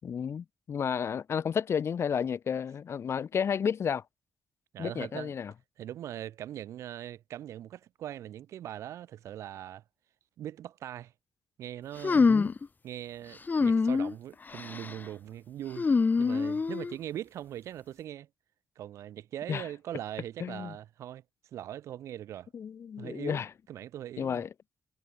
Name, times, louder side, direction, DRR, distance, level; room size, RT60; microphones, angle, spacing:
voice 1, 0.0-4.0 4.8-5.5 12.2-12.6 19.5-19.7 20.4-20.8 22.5-23.5 24.2-24.5, left 7 dB, 60° left, 7.1 m, -32 dB
voice 2, 4.7-5.3 5.8-9.8 10.4-11.1 11.6-12.3 12.8-15.9 16.2-18.3 18.8-21.2 21.5-22.5 23.0-23.4 23.7-24.4, right 11 dB, 75° right, 4.3 m, -41 dB
sound 1, 12.0-12.7 13.5-14.1 14.5-14.9 15.8-16.9, left 4 dB, 35° left, 1.1 m, -25 dB
supercardioid pair, 55°, 5 cm